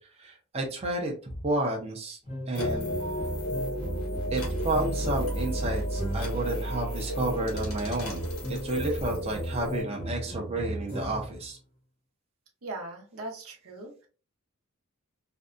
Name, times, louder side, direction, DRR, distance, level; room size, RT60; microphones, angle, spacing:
voice 1, 0.2-1.1 1.4-2.2 2.5-2.9 4.3-11.6, right 2 dB, 30° right, -1 dB, 0.5 m, -31 dB
sound 1, 2.3-6.5 7.2-11.4, right 1 dB, 30° left, 0.7 m, -37 dB
sound 2, 2.5-9.8, equal, 90° left, 1.1 m, -32 dB
voice 2, 12.6-14.1, right 2 dB, 75° right, 1 dB, 0.7 m, -39 dB
2.6 x 2.2 x 2.4 m, 0.36 s
head